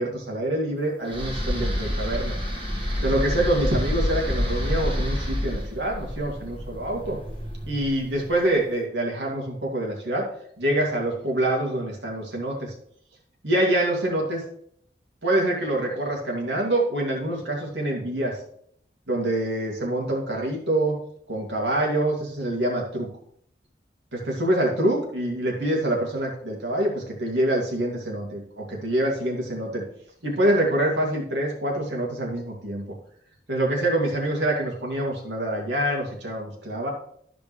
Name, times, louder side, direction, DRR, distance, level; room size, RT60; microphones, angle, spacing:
voice 1, 0.0-2.4 3.0-7.2 7.7-10.3 10.6-12.7 13.4-14.4 15.2-18.4 19.1-21.0 21.3-23.1 24.1-29.8 30.2-32.8 33.5-36.9, right 1 dB, 85° right, -1 dB, 2.3 m, -25 dB
sound 1, 1.1-8.3, equal, 30° right, 1.4 m, -28 dB
13.0 x 5.1 x 3.2 m, 0.66 s
head